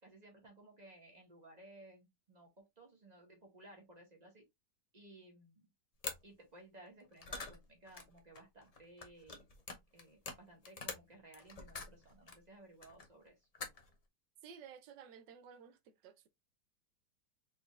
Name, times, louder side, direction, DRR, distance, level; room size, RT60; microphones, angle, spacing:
voice 1, 0.0-4.4 4.9-5.7 6.2-9.4 9.9-13.5, right 1 dB, 25° right, 1.7 m, -58 dB
sound 1, 6.0-6.2 7.0-12.4 12.8-13.3 13.5-13.9, left 4 dB, 60° left, 0.3 m, -46 dB
voice 2, 14.4-16.3, right 7 dB, 90° right, 1.4 m, -54 dB
4.4 x 4.1 x 2.4 m
omnidirectional pair, 1.9 m